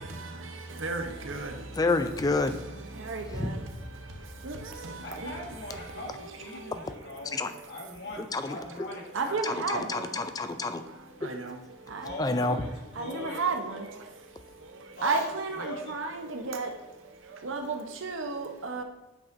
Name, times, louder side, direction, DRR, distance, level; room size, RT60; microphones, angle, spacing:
voice 1, 1.7-2.6 3.3-3.6 7.3-7.5 8.2-9.0 9.4-10.8 11.2-11.4 12.2-12.6, left 3 dB, 20° left, 9 dB, 0.3 m, -29 dB
voice 2, 5.0-7.4 7.7-9.4 12.0-12.7 13.0-13.4 15.0-15.9, equal, 60° left, -1 dB, 1.6 m, -40 dB
voice 3, 9.2-9.8 13.1-13.6 15.0-15.5 16.0-16.1 16.5-16.7 17.5-17.7 18.0-18.8, right 4 dB, 80° right, 5 dB, 0.8 m, -30 dB
8.6 x 5.2 x 2.6 m, 1.1 s
head